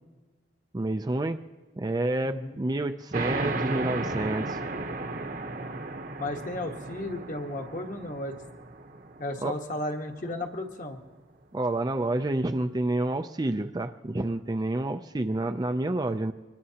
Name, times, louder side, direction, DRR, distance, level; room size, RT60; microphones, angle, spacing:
voice 1, 0.7-1.4 1.8-4.6 9.4-9.5 11.5-16.3, right 2 dB, 20° right, 7 dB, 0.4 m, -29 dB
voice 2, 2.2-2.6 6.2-8.4 9.2-11.0, left 1 dB, 40° left, 4 dB, 1.3 m, -34 dB
sound 1, 3.1-10.3, right 2 dB, 45° right, 0.9 m, -34 dB
24.5 x 20.0 x 2.9 m, 1.3 s
head